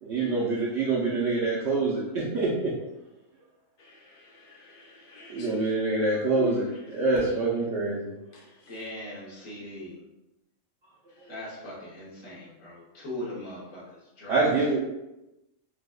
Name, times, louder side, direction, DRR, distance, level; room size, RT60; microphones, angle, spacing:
voice 1, 0.0-2.7 5.3-8.1 11.2-11.3 14.3-14.8, right 3 dB, 65° right, -6 dB, 0.8 m, -26 dB
voice 2, 3.8-5.8 6.4-6.5 7.0-7.1 8.3-8.8, left 1 dB, 60° left, 0 dB, 0.6 m, -44 dB
voice 3, 8.7-10.0 11.3-13.8 14.2-14.5, left 1 dB, 75° left, -6 dB, 1.5 m, -39 dB
4.7 x 2.1 x 2.2 m, 0.96 s
omnidirectional pair, 1.4 m